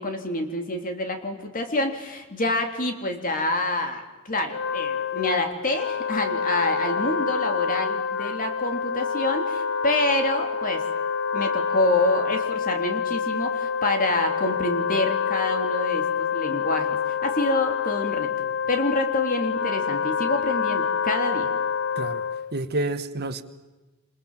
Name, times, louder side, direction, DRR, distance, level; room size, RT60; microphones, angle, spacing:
voice 1, 0.0-10.8 11.3-21.5, left 2 dB, 40° left, 3.3 m, -27 dB
Wind instrument woodwind instrument, 4.4-22.5, left 6 dB, 60° left, 0.9 m, -27 dB
voice 2, 22.5-23.4, right 2 dB, 50° right, 1.5 m, -28 dB
28.0 x 27.5 x 7.5 m
head